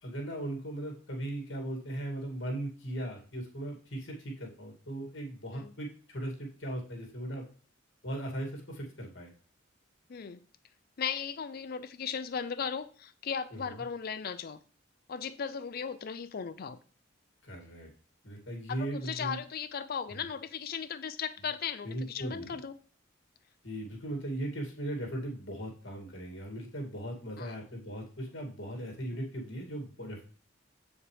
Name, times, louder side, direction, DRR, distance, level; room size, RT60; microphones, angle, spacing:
voice 1, 0.0-7.5 8.0-9.3 17.4-17.9 18.2-19.4 21.8-22.6 23.6-30.2, right 1 dB, 65° left, 2.5 m, -38 dB
voice 2, 10.1-10.4 11.0-14.6 15.1-16.8 18.7-22.7 27.4-27.5, left 7 dB, 50° left, 0.4 m, -37 dB
7.5 x 7.2 x 3.4 m
head